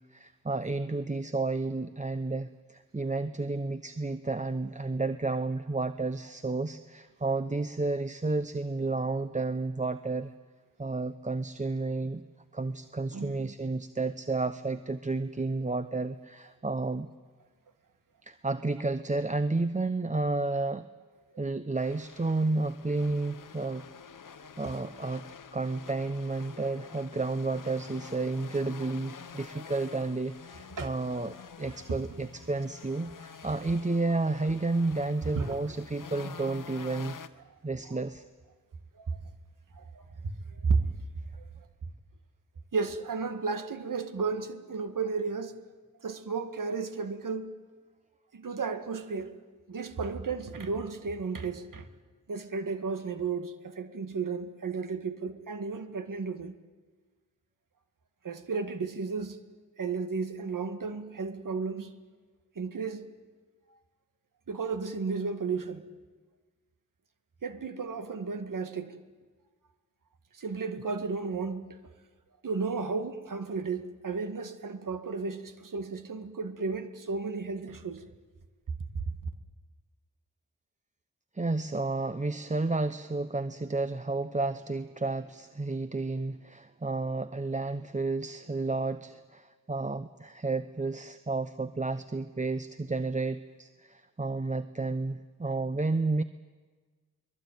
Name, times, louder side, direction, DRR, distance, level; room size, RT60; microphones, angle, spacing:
voice 1, 0.1-10.3 10.8-12.2 12.5-17.1 18.2-20.9 21.4-23.9 24.6-25.2 25.5-37.2 37.6-38.2 81.3-96.2, right 3 dB, 20° right, 11 dB, 0.9 m, -31 dB
voice 2, 13.1-13.5 24.4-24.5 30.8-30.9 35.4-35.5 39.0-39.2 39.8-40.8 42.7-45.5 46.0-47.5 48.3-49.3 49.7-51.9 52.3-56.6 58.2-59.4 59.8-62.0 62.6-63.1 64.5-65.8 67.4-69.0 70.3-71.8 72.4-78.0, right 4 dB, 75° right, 8 dB, 1.9 m, -33 dB
sound 1, 21.8-37.3, left 6 dB, 75° left, 1.1 m, -48 dB
23.5 x 21.5 x 9.4 m, 1.4 s
cardioid pair, 60°, 32 cm